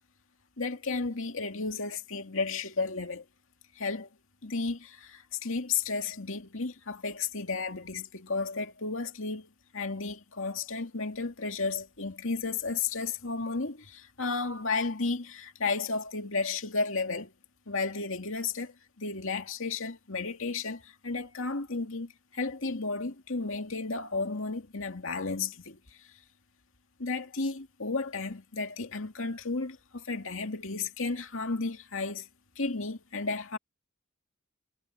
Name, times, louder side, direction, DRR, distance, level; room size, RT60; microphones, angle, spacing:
voice 1, 0.6-3.2 3.8-4.1 4.4-17.3 17.7-25.8 27.0-32.3 32.6-33.6, left 4 dB, 65° left, 2.6 m, -33 dB
head